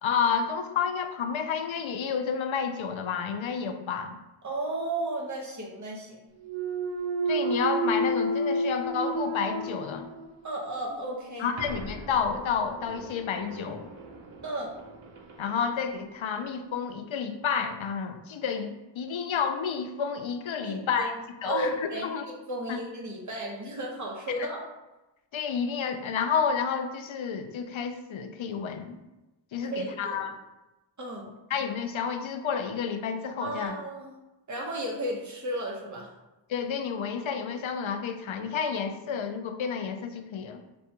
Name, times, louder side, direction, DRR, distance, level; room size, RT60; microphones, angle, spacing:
voice 1, 0.0-4.2 7.3-10.1 11.4-13.9 15.4-21.1 21.4-21.8 22.0-22.3 22.7-22.8 25.3-29.0 29.5-30.4 31.5-33.8 36.5-40.6, left 6 dB, 85° left, 7 dB, 0.5 m, -30 dB
voice 2, 4.4-6.3 10.4-11.5 14.4-14.7 20.6-21.1 21.4-24.6 29.6-30.3 31.0-31.3 33.4-34.1 34.5-36.1, right 1 dB, 40° right, -2 dB, 0.9 m, -34 dB
Thump thud, 6.4-10.4 10.9-15.6, right 1 dB, 80° right, 0.7 m, -32 dB
6.1 x 2.2 x 2.8 m, 1.0 s
wide cardioid pair, 70°, 46 cm